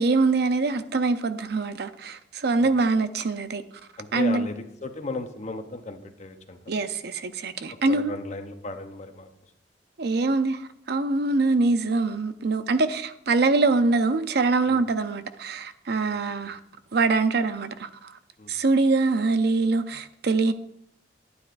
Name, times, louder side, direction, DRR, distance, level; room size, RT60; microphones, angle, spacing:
voice 1, 0.0-3.6 4.1-4.5 6.7-8.1 10.0-16.6 16.9-18.2 18.5-20.5, right 3 dB, 65° right, 0.6 m, -24 dB
voice 2, 4.0-6.9 7.9-9.3 14.7-14.8 15.9-16.2 18.4-18.5, left 2 dB, 40° left, 0.9 m, -36 dB
12.0 x 9.6 x 2.6 m
head